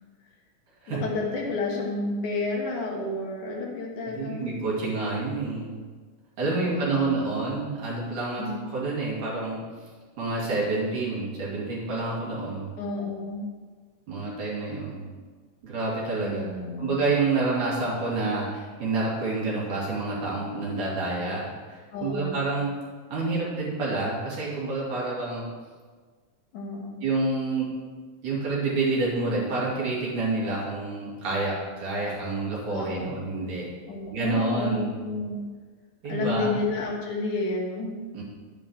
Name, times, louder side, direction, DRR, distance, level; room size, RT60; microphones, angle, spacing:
voice 1, 0.9-4.5 6.4-7.4 8.4-8.8 12.8-13.5 16.2-17.0 21.9-22.4 26.5-27.0 32.7-33.2 33.9-35.4 36.1-38.0, left 2 dB, 70° left, -2 dB, 3.0 m, -31 dB
voice 2, 4.0-5.8 6.4-8.5 8.7-9.6 10.2-12.7 14.1-15.0 15.6-16.4 16.8-22.7 23.1-25.5 27.0-27.7 28.2-33.7 34.1-35.0 36.0-36.5 38.1-38.2, right 3 dB, 70° right, -6 dB, 4.2 m, -28 dB
11.5 x 10.0 x 3.3 m, 1.5 s
omnidirectional pair, 3.7 m